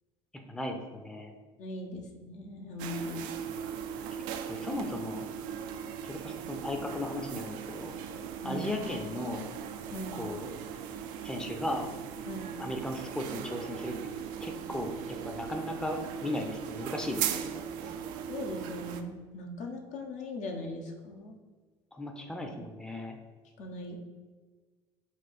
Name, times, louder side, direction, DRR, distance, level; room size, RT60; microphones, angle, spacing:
voice 1, 0.5-1.3 4.4-5.3 6.0-8.0 8.4-9.5 10.1-10.5 11.2-11.9 12.6-13.9 14.4-17.9 21.9-23.2, left 1 dB, 5° left, 3 dB, 0.6 m, -36 dB
voice 2, 1.6-3.2 8.4-8.6 9.9-10.2 12.3-12.5 18.3-21.4 23.6-24.0, left 1 dB, 55° left, 3 dB, 0.8 m, -39 dB
sound 1, 2.8-19.0, right 8 dB, 65° right, 0.4 m, -39 dB
4.3 x 2.3 x 4.3 m, 1.4 s
hypercardioid pair, 70°, 15 cm